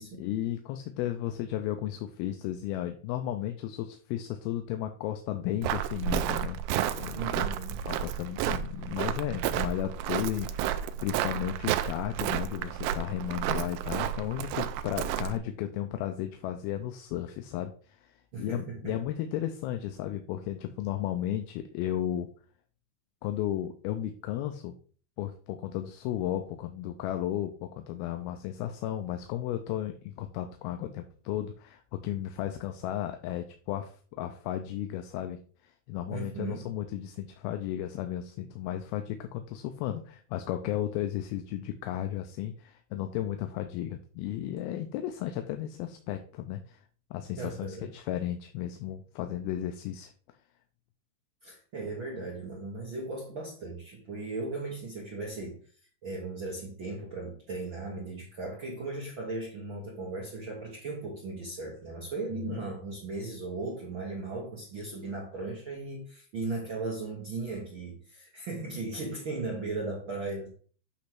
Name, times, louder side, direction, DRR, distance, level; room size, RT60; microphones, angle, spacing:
voice 1, 0.2-6.6 7.0-7.5 7.9-22.3 23.2-24.7 25.2-46.8 47.1-50.1 62.5-62.6 66.5-66.6, left 12 dB, 85° left, 7 dB, 2.5 m, -34 dB
Walk footsteps, 5.6-15.4, right 10 dB, 85° right, 2.0 m, -31 dB
voice 2, 7.1-7.8 18.3-19.0 36.1-36.7 47.4-47.9 51.4-55.6 56.0-70.5, right 3 dB, 55° right, -2 dB, 1.4 m, -37 dB
8.5 x 3.1 x 5.8 m, 0.43 s
omnidirectional pair, 4.4 m